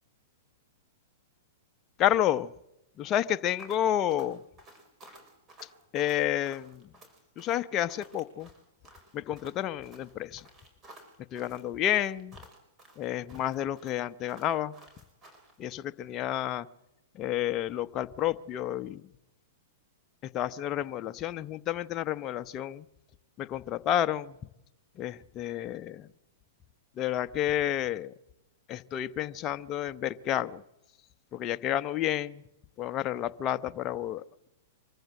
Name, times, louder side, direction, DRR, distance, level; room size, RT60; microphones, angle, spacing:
voice 1, 2.0-2.5 3.0-4.4 5.9-6.8 7.4-8.5 9.1-10.4 11.3-12.4 13.0-14.7 15.6-16.7 17.1-19.0 20.3-22.8 23.4-24.4 25.0-26.1 27.0-28.1 28.7-30.6 31.3-32.4 32.8-34.5, left 11 dB, 35° left, 10 dB, 0.8 m, -30 dB
sound 1, 3.6-15.6, right 1 dB, 25° right, 5.3 m, -55 dB
24.5 x 14.5 x 7.7 m, 0.92 s
hypercardioid pair, 120°, 0 cm